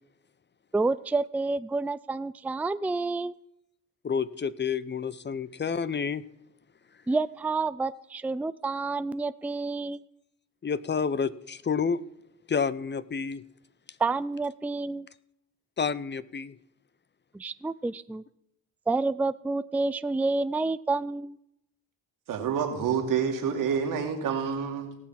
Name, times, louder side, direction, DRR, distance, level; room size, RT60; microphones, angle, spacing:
voice 1, 0.7-3.4 7.1-10.0 14.0-15.1 17.3-18.2 18.9-21.4, right 3 dB, 5° right, 15 dB, 0.4 m, -29 dB
voice 2, 4.0-6.2 10.6-12.0 12.5-13.4 15.8-16.5, left 6 dB, 35° left, 17 dB, 0.6 m, -29 dB
voice 3, 22.3-25.0, right 7 dB, 85° right, 3 dB, 2.4 m, -28 dB
18.0 x 6.3 x 5.8 m, 0.78 s
cardioid pair, 70°, 32 cm